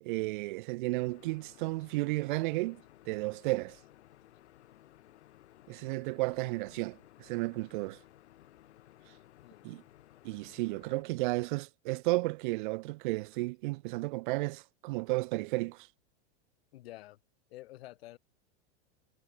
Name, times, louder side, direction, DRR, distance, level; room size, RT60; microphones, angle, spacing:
voice 1, 0.0-3.8 5.7-8.0 9.6-9.8 10.2-15.9, right 22 dB, 50° right, 1.4 m, -33 dB
sound 1, 1.0-11.0, left 13 dB, 85° left, 3.7 m, -58 dB
voice 2, 16.7-17.2 17.5-18.2, left 16 dB, 65° left, 2.6 m, -49 dB
supercardioid pair, 170°, 33 cm